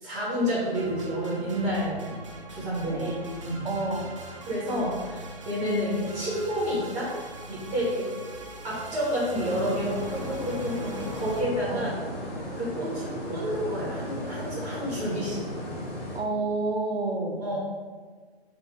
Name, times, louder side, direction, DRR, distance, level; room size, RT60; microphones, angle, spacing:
voice 1, 0.0-2.1 2.5-3.1 3.4-3.7 4.4-7.1 7.5-8.1 8.6-11.9 12.5-15.5 17.4-17.6, equal, 10° right, -7 dB, 1.0 m, -29 dB
sound 1, 0.7-11.4, right 2 dB, 30° right, 0.4 m, -42 dB
voice 2, 2.7-3.1 3.6-4.1 11.7-11.9 16.1-17.4, right 3 dB, 70° right, 2 dB, 0.9 m, -29 dB
sound 2, 9.3-16.2, left 1 dB, 20° left, 1.0 m, -36 dB
4.2 x 2.5 x 4.8 m, 1.5 s
figure-of-eight pair, 130°, 32 cm